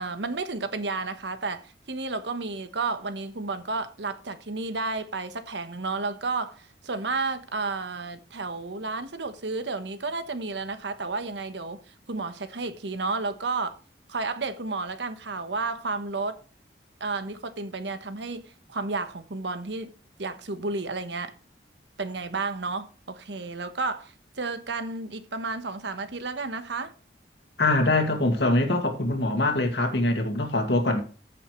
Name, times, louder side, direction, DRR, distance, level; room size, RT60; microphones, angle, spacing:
voice 1, 0.0-11.8 12.1-13.8 14.1-16.4 17.0-19.9 20.2-21.3 22.0-26.9, right 3 dB, 80° right, 1.2 m, -32 dB
voice 2, 27.6-31.0, left 2 dB, 75° left, 2.2 m, -23 dB
14.5 x 6.8 x 3.2 m
head